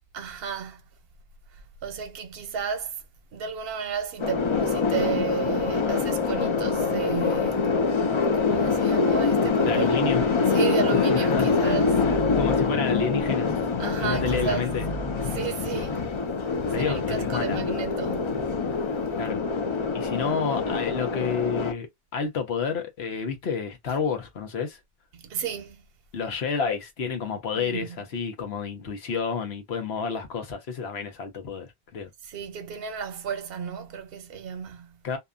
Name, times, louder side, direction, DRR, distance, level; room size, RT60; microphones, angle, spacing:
voice 1, 0.1-0.8 1.8-3.0 3.3-7.8 8.3-10.0 10.5-12.0 12.6-12.8 13.8-14.7 15.2-16.0 16.7-18.4 25.1-25.8 27.5-28.0 32.2-35.0, right 7 dB, 70° right, 0.9 m, -33 dB
sound 1, 4.2-21.7, left 4 dB, 40° left, 0.4 m, -25 dB
voice 2, 9.6-10.4 11.1-11.8 12.1-13.5 14.0-14.8 16.7-17.7 19.2-19.4 19.9-24.8 26.1-32.1 35.0-35.2, left 6 dB, 85° left, 1.1 m, -30 dB
sound 2, 10.0-10.3 11.0-12.7 13.0-13.3 14.0-15.9 16.7-16.8, right 1 dB, 55° left, 1.4 m, -35 dB
2.8 x 2.2 x 2.4 m
omnidirectional pair, 1.0 m